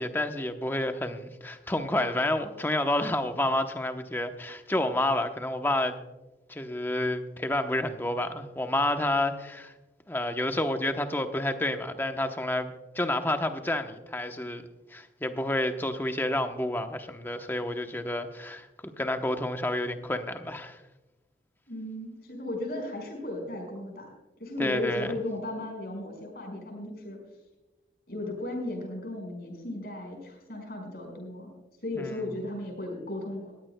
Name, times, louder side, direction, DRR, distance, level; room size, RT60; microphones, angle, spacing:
voice 1, 0.0-6.0 6.5-9.7 10.1-14.6 14.9-20.8 24.6-25.1 32.0-32.3, left 1 dB, 10° left, 0.8 m, -29 dB
voice 2, 21.7-24.1 24.4-27.2 28.1-31.5 31.8-33.5, left 1 dB, 60° left, 5.2 m, -35 dB
19.5 x 15.5 x 2.2 m
head